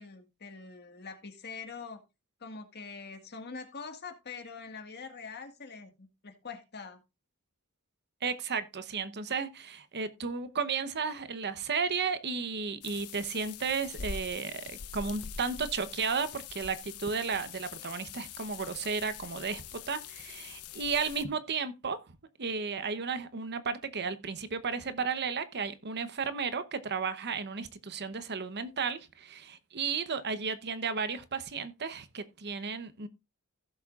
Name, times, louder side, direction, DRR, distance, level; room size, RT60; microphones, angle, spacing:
voice 1, 0.0-2.0 2.4-7.0, left 5 dB, 50° left, 1.7 m, -44 dB
voice 2, 8.2-22.0 22.4-33.1, right 5 dB, 50° right, 0.9 m, -34 dB
sound 1, 12.8-21.2, left 7 dB, 90° left, 0.8 m, -44 dB
16.0 x 7.2 x 2.4 m
head